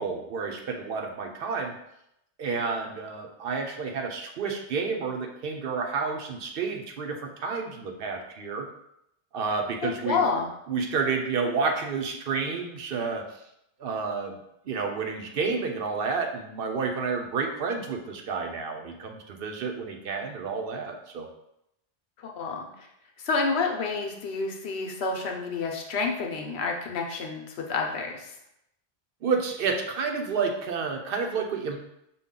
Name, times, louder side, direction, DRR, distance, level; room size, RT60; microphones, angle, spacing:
voice 1, 0.0-1.7 2.4-8.7 9.3-10.2 10.7-13.3 13.8-14.4 14.7-21.3 29.2-31.8, right 5 dB, 65° right, 3 dB, 0.8 m, -30 dB
voice 2, 9.8-10.5 22.2-22.7 23.2-28.3, left 4 dB, 80° left, 2 dB, 1.0 m, -29 dB
5.3 x 2.3 x 3.6 m, 0.80 s
omnidirectional pair, 1.1 m